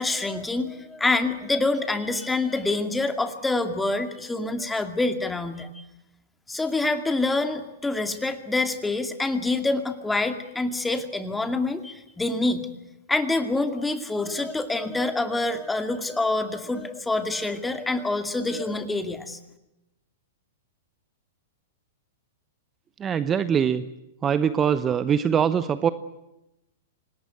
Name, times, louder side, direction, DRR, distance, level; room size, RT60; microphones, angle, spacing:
voice 1, 0.0-5.8 6.5-12.7 13.1-19.4, left 2 dB, 10° left, 7 dB, 2.4 m, -26 dB
voice 2, 23.0-23.8 24.2-25.9, right 8 dB, 25° right, 13 dB, 0.9 m, -22 dB
26.0 x 19.0 x 9.4 m, 0.91 s
hypercardioid pair, 120°, 0 cm